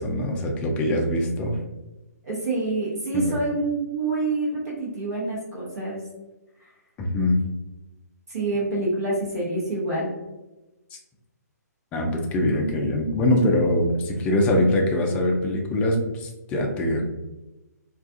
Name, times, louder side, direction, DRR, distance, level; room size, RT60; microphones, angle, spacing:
voice 1, 0.0-1.6 3.1-3.2 7.0-7.4 11.9-17.0, left 1 dB, 15° left, 1 dB, 0.3 m, -23 dB
voice 2, 2.2-6.0 8.3-10.1, right 2 dB, 55° right, -6 dB, 1.0 m, -27 dB
2.4 x 2.3 x 2.5 m, 1.0 s
figure-of-eight pair, 140°, 9 cm